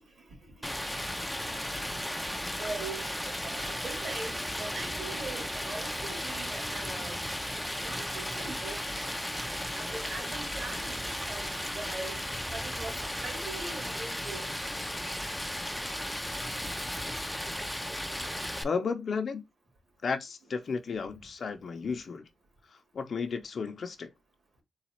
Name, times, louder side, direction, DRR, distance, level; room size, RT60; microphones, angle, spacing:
Stream, 0.6-18.6, equal, 5° left, 0.5 m, -35 dB
voice 1, 2.5-7.2 7.8-8.8 9.8-14.5, right 3 dB, 55° right, 2.2 m, -41 dB
voice 2, 18.6-19.4 20.0-22.3 22.7-24.1, left 5 dB, 55° left, 0.6 m, -33 dB
4.0 x 2.3 x 4.2 m
wide cardioid pair, 125°, 0 cm